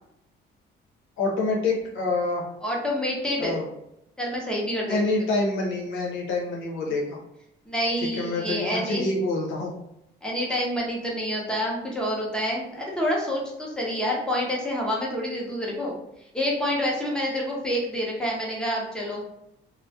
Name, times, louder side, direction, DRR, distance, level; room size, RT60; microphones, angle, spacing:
voice 1, 1.2-2.4 3.4-3.7 4.9-7.2 8.1-9.7, left 2 dB, 90° left, -1 dB, 0.7 m, -26 dB
voice 2, 2.6-3.6 4.2-5.0 7.7-9.1 10.2-16.0 16.3-19.2, equal, 5° left, -3 dB, 0.6 m, -27 dB
2.2 x 2.1 x 2.6 m, 0.81 s
cardioid pair, 140°, 20 cm